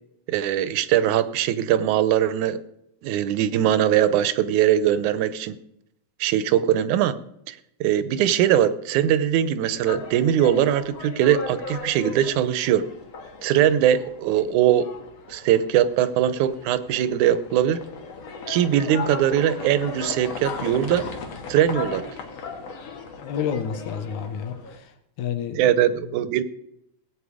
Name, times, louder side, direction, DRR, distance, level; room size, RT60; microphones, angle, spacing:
voice 1, 0.3-2.6 3.0-5.6 6.2-7.2 7.5-12.9 13.4-14.9 15.3-17.8 18.5-21.1 21.5-22.1 25.5-26.4, right 10 dB, 85° right, 14 dB, 2.2 m, -21 dB
sound 1, 9.7-24.8, left 4 dB, 60° left, 2.6 m, -37 dB
voice 2, 23.2-24.9 25.2-25.7, left 7 dB, 85° left, 8 dB, 2.6 m, -29 dB
19.0 x 8.6 x 4.9 m, 0.79 s
omnidirectional pair, 3.4 m